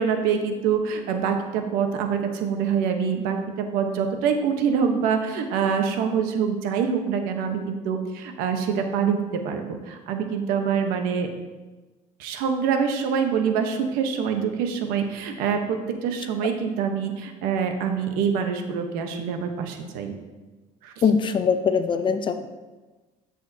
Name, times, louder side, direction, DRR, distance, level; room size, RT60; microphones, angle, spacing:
voice 1, 0.0-11.3 12.2-20.1 20.8-20.9, right 6 dB, 85° right, 6 dB, 1.0 m, -25 dB
voice 2, 21.0-22.5, left 6 dB, 35° left, 9 dB, 0.6 m, -22 dB
12.5 x 6.3 x 2.7 m, 1.2 s
cardioid pair, 125°, 14 cm